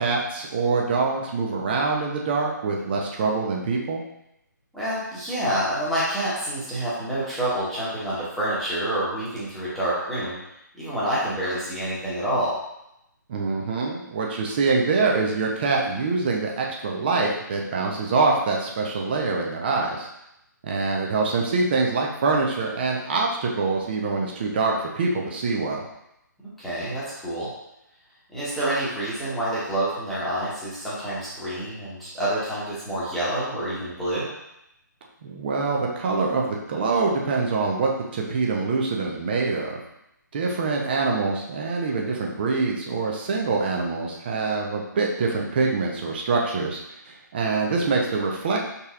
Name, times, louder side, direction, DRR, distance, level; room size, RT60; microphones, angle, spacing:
voice 1, 0.0-4.0 13.3-20.1 20.6-25.8 35.2-39.8 40.3-46.8 47.0-48.6, right 4 dB, 30° right, 0 dB, 0.7 m, -25 dB
voice 2, 4.7-10.3 10.8-12.5 26.6-27.5 28.3-34.3, right 1 dB, ahead, -11 dB, 1.2 m, -27 dB
5.3 x 4.1 x 2.4 m, 0.83 s
figure-of-eight pair, 140°, 10 cm